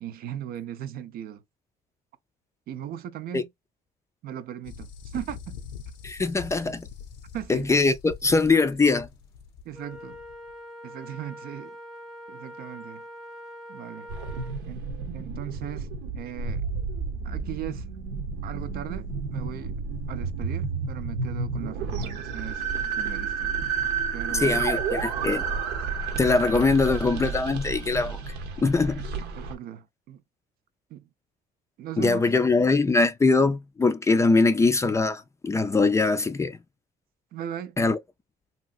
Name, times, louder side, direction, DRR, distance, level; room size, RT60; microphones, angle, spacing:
voice 1, 0.0-1.4 2.7-3.5 4.2-5.6 7.3-7.7 9.6-10.2 10.8-11.8 12.3-13.1 13.7-14.1 14.7-14.9 15.1-16.6 17.2-17.9 18.4-19.8 20.1-22.6 23.0-23.6 24.1-24.6 26.1-26.2 29.4-30.2 30.9-31.1 31.8-32.2 37.3-37.8, right 11 dB, 65° right, 0.5 m, -38 dB
sound 1, 4.6-10.5, left 6 dB, 90° left, 0.6 m, -43 dB
voice 2, 6.0-6.8 7.5-9.1 24.3-25.4 26.2-28.2 28.6-29.1 32.0-36.6 37.8-38.0, left 3 dB, 15° left, 0.4 m, -22 dB
Wind instrument woodwind instrument, 9.7-14.6, equal, ahead, 0.7 m, -43 dB
sound 2, 14.1-29.5, right 5 dB, 90° right, 0.8 m, -31 dB
3.0 x 2.8 x 2.3 m
cardioid pair, 110°, 17 cm